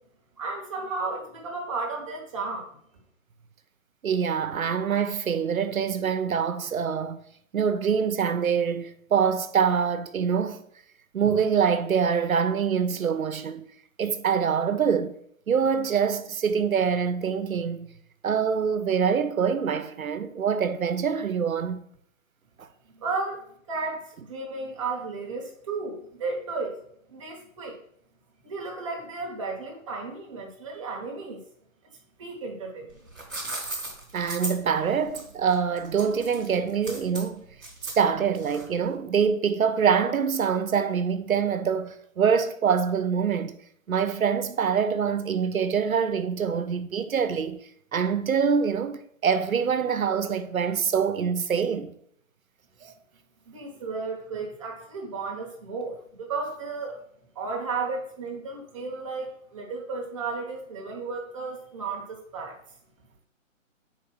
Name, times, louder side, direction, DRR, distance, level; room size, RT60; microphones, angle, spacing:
voice 1, 0.4-2.7 23.0-26.8 27.1-27.8 28.4-31.4 32.2-32.9 53.5-57.0 57.3-62.6, right 4 dB, 25° right, 1.1 m, -33 dB
voice 2, 4.0-7.2 7.5-10.6 11.1-13.7 14.0-15.1 15.5-17.9 18.2-21.8 22.6-22.7 34.1-37.4 38.0-43.6 43.9-47.6 47.9-51.9 52.8-52.9, right 7 dB, 85° right, 1.0 m, -25 dB
sound 1, 32.9-38.9, right 2 dB, ahead, 1.1 m, -37 dB
5.5 x 4.7 x 6.1 m
hypercardioid pair, 165°, 41 cm